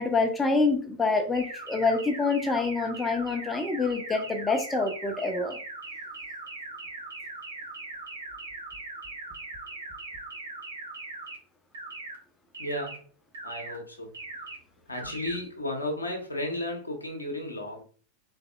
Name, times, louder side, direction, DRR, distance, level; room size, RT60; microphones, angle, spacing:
voice 1, 0.0-5.6, left 3 dB, 15° left, 0.6 m, -26 dB
sound 1, 1.3-11.4 11.7-12.2 12.5-13.0 13.3-13.8 14.1-14.6 14.9-15.4, right 2 dB, 70° right, 1.1 m, -40 dB
voice 2, 12.6-13.1 13.4-14.2 14.9-17.8, left 1 dB, 75° left, 0.7 m, -34 dB
3.9 x 3.3 x 2.4 m
figure-of-eight pair, 90°, 0 cm